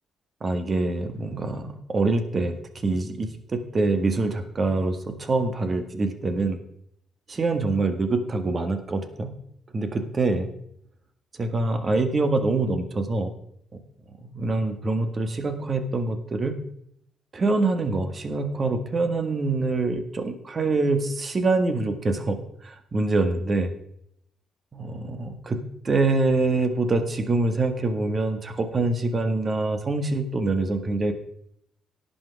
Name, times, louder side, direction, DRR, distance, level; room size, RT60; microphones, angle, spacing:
voice 1, 0.4-6.6 7.3-9.3 9.7-10.5 11.4-13.3 14.3-16.6 17.3-22.4 22.6-23.7 24.7-31.1, right 3 dB, 40° right, 8 dB, 1.8 m, -25 dB
17.5 x 5.9 x 4.8 m, 0.72 s
hypercardioid pair, 45°, 0 cm